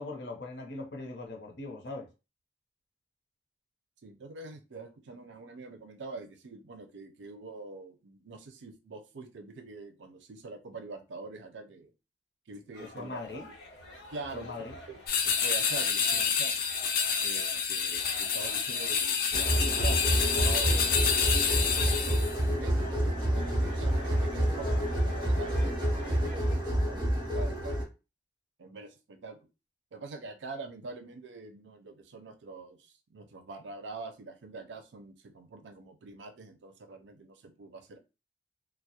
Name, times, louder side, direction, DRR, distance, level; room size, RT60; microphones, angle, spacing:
voice 1, 0.0-2.1 12.8-13.5 14.3-14.7, left 3 dB, 75° left, 0.7 m, -40 dB
voice 2, 4.0-11.9 12.5-13.6 14.1-14.5 14.9-15.0 15.2-16.5 17.2-21.0 21.2-27.9 28.6-29.4 29.9-38.0, right 3 dB, 85° right, 0.4 m, -45 dB
sound 1, 12.7-26.5, left 1 dB, 90° left, 1.0 m, -49 dB
sound 2, 15.1-22.4, left 6 dB, 50° left, 0.3 m, -28 dB
sound 3, 19.3-27.8, right 1 dB, 25° right, 0.5 m, -28 dB
2.3 x 2.0 x 2.7 m
head